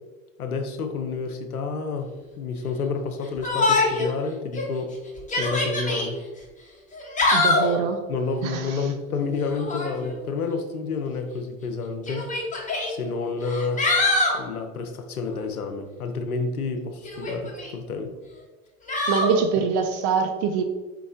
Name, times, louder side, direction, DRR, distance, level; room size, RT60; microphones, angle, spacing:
voice 1, 0.4-2.1 2.4-5.0 5.4-6.2 7.8-12.3 12.9-13.9 14.3-18.1, left 4 dB, 90° left, 6 dB, 0.6 m, -29 dB
Yell, 3.4-4.1 4.5-4.6 5.2-6.1 6.9-7.8 9.5-10.0 11.1-11.2 12.1-12.9 13.4-14.4 17.0-17.7 18.9-19.4, left 2 dB, 15° left, 1.1 m, -23 dB
voice 2, 7.3-8.0 8.4-8.8 19.1-20.6, right 6 dB, 45° right, 7 dB, 0.5 m, -24 dB
4.3 x 2.8 x 3.8 m, 1.3 s
figure-of-eight pair, 70°, 43 cm